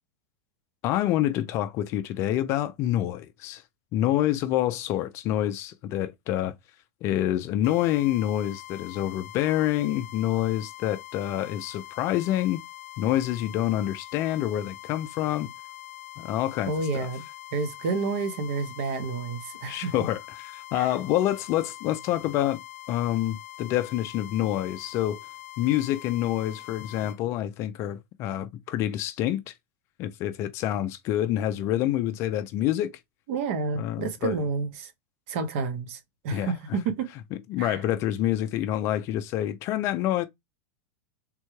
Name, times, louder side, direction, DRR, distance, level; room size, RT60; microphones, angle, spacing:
voice 1, 0.8-3.6 3.9-6.5 7.0-12.6 13.0-15.5 16.2-17.1 19.7-22.6 22.9-25.2 25.6-29.5 30.0-32.9 33.7-34.4 36.3-36.5 37.5-40.2, left 13 dB, 35° left, 0.3 m, -27 dB
sound 1, 7.6-27.2, left 14 dB, 80° left, 0.6 m, -44 dB
voice 2, 16.7-17.2 17.5-19.9 20.7-20.9 33.3-34.9 35.3-37.1 37.6-37.8, right 4 dB, 55° right, 0.7 m, -30 dB
3.6 x 2.1 x 3.0 m
supercardioid pair, 155°, 8 cm